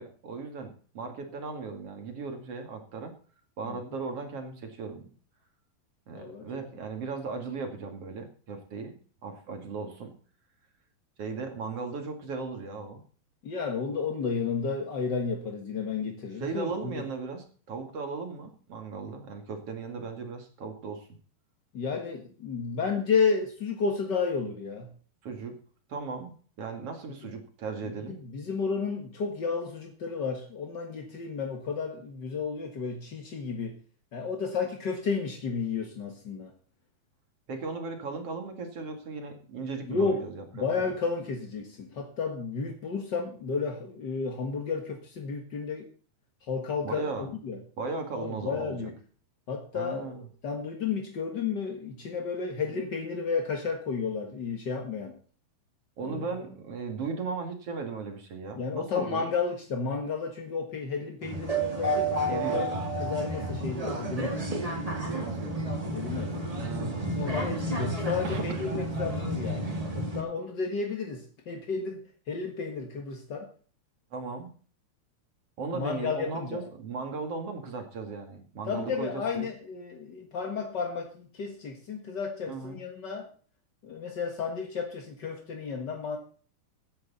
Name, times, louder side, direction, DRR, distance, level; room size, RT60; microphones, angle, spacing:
voice 1, 0.0-3.1 3.6-5.1 6.1-8.9 9.2-10.1 11.2-13.0 16.4-21.1 25.2-25.5 25.9-28.2 37.5-40.9 46.8-47.3 47.8-48.9 49.7-50.3 56.0-59.3 62.3-62.7 65.0-65.6 66.6-67.2 68.2-68.8 74.1-74.5 75.6-79.5 82.5-82.8, right 4 dB, 45° right, 4 dB, 2.7 m, -37 dB
voice 2, 6.1-6.5 13.4-17.0 21.7-24.9 28.2-33.8 34.1-36.5 39.9-40.2 40.5-45.9 46.5-47.6 48.2-48.9 49.5-55.2 56.0-56.2 58.5-64.4 65.9-66.4 67.1-69.7 69.9-73.5 75.7-76.6 78.7-83.3 83.8-86.2, left 5 dB, 60° left, 3 dB, 1.1 m, -32 dB
sound 1, 61.2-70.2, right 1 dB, 20° right, 1.0 m, -31 dB
16.0 x 9.9 x 4.1 m, 0.41 s
omnidirectional pair, 4.5 m